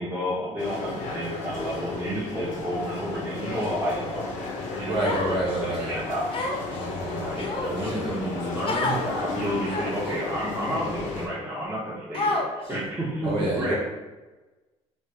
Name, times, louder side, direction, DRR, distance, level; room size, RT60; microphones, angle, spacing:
voice 1, 0.0-4.3 4.8-6.2 7.2-13.7, equal, 15° right, -7 dB, 0.8 m, -31 dB
sound 1, 0.6-11.3, left 3 dB, 80° left, 0.6 m, -34 dB
voice 2, 4.8-6.0 6.7-7.3 7.6-8.2 13.2-13.7, right 1 dB, 40° right, -4 dB, 1.2 m, -29 dB
Human voice, 5.0-5.6 6.3-6.8 7.4-8.0 8.6-9.0 9.7-10.1 10.8-10.9 12.1-12.7, left 2 dB, 45° left, 0.6 m, -28 dB
3.1 x 2.5 x 3.2 m, 1.2 s
cardioid pair, 110°, 13 cm